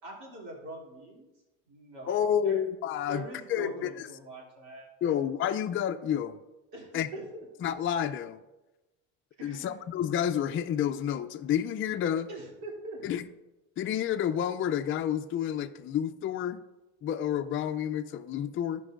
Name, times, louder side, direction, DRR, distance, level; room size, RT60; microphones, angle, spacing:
voice 1, 0.0-1.3 1.7-2.6 3.1-5.1 6.7-7.5 9.4-9.8 12.3-13.0, right 2 dB, 85° right, -3 dB, 2.9 m, -43 dB
voice 2, 2.1-4.1 5.0-6.4 6.9-7.1 7.6-8.4 9.4-12.3 13.0-13.3 13.8-16.6 17.0-18.8, left 9 dB, 35° left, 7 dB, 0.5 m, -30 dB
15.5 x 5.4 x 2.5 m, 1.0 s
supercardioid pair, 95°, 35 cm